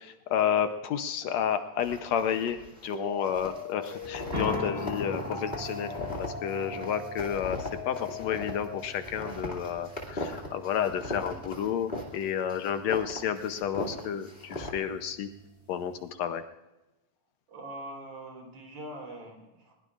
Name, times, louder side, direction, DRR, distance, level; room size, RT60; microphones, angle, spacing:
voice 1, 0.0-5.9 6.2-15.3 15.7-16.4, left 8 dB, 75° left, 8 dB, 1.9 m, -31 dB
sound 1, 1.8-2.9 3.2-12.2 12.5-14.7, left 1 dB, 20° left, 2.3 m, -39 dB
sound 2, 2.9-8.8, left 5 dB, 35° left, 2.3 m, -41 dB
sound 3, 4.3-16.1, left 1 dB, 25° right, 2.5 m, -42 dB
voice 2, 17.5-19.7, right 1 dB, 55° right, 1 dB, 5.0 m, -43 dB
21.0 x 21.0 x 2.5 m, 0.99 s
omnidirectional pair, 3.3 m